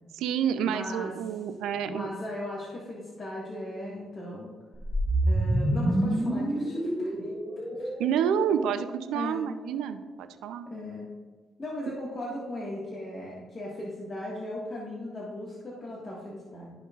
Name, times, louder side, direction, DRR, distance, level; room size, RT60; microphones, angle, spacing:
voice 1, 0.1-2.1 8.0-10.7, right 8 dB, 90° right, 9 dB, 0.5 m, -29 dB
voice 2, 0.7-1.1 1.7-4.5 5.2-7.9 9.1-9.4 10.6-11.1 11.6-16.7, left 1 dB, 30° left, -5 dB, 1.7 m, -38 dB
sound 1, 4.7-9.1, right 1 dB, 10° right, 1.2 m, -28 dB
12.5 x 5.4 x 2.4 m, 1.3 s
cardioid pair, 90°, 0 cm